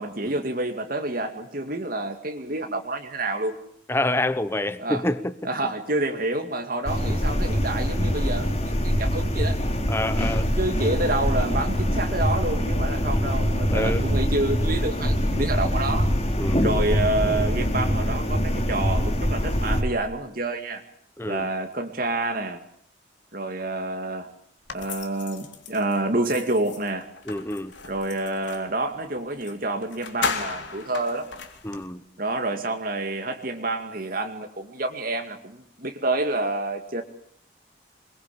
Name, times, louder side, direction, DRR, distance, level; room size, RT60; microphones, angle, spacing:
voice 1, 0.0-3.6 4.8-5.0 5.4-9.6 10.6-16.1 16.6-20.8 21.3-22.6 23.3-24.3 24.7-27.1 27.8-31.3 32.2-37.0, right 2 dB, 45° right, 2.3 m, -28 dB
voice 2, 3.9-5.3 9.9-10.5 13.7-14.0 16.4-16.7 21.2-21.5 27.3-27.7 31.6-32.0, left 1 dB, 10° left, 1.1 m, -27 dB
sound 1, 6.9-19.8, equal, 30° left, 3.1 m, -24 dB
sound 2, 24.7-28.7 29.4-29.5 29.8-31.8, left 5 dB, 70° left, 3.7 m, -35 dB
27.5 x 22.5 x 8.6 m
head